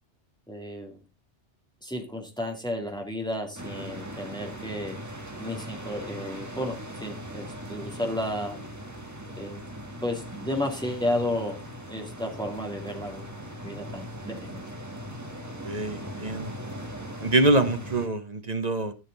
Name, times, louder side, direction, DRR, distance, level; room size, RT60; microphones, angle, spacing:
voice 1, 0.5-1.0 1.8-5.0 5.4-8.6 9.4-9.7 10.0-11.6 11.9-13.3 13.6-14.6, left 1 dB, 5° left, 1 dB, 2.4 m, -32 dB
sound 1, 3.6-18.1, equal, 15° right, 1.8 m, -39 dB
voice 2, 15.6-16.5 17.2-18.9, right 2 dB, 35° right, 9 dB, 1.1 m, -25 dB
14.0 x 6.6 x 3.9 m, 0.27 s
omnidirectional pair, 1.2 m